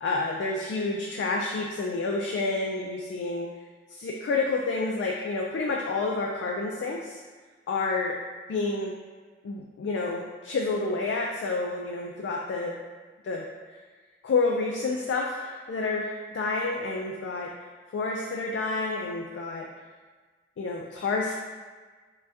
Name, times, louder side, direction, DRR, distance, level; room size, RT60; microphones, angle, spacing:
voice 1, 0.0-3.5 3.9-7.2 7.7-8.1 8.5-8.9 9.4-12.8 13.2-13.4 14.2-17.5 17.9-19.7 20.6-21.3, left 3 dB, 75° left, -1 dB, 0.3 m, -29 dB
2.6 x 2.2 x 3.3 m, 1.4 s
head